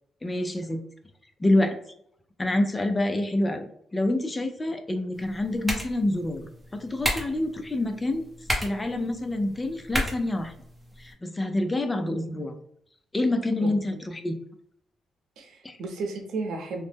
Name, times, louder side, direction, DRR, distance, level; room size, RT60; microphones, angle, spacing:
voice 1, 0.2-0.8 1.4-1.8 2.4-3.7 3.9-8.3 8.6-10.5 11.0-12.6 13.1-14.4 15.6-15.8, left 1 dB, 15° left, 7 dB, 0.3 m, -27 dB
sound 1, 5.1-11.1, equal, 10° right, 0.7 m, -34 dB
voice 2, 13.6-14.0 15.4-16.9, right 3 dB, 80° right, 3 dB, 0.7 m, -34 dB
3.0 x 2.0 x 3.2 m, 0.69 s
cardioid pair, 140°, 0 cm